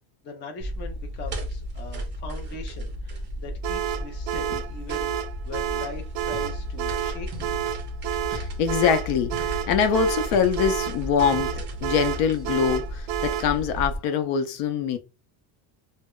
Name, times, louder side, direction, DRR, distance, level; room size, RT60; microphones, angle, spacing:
voice 1, 0.2-7.6, left 4 dB, 25° left, 0.4 m, -41 dB
sound 1, 0.6-14.0, equal, 25° right, 0.6 m, -34 dB
sound 2, 3.6-13.6, right 11 dB, 75° right, 0.5 m, -30 dB
sound 3, 6.3-12.6 13.3-13.6, right 2 dB, 40° right, 1.0 m, -42 dB
voice 2, 8.3-15.0, left 7 dB, 70° left, 0.7 m, -24 dB
2.1 x 2.1 x 3.6 m
cardioid pair, 170°, 49 cm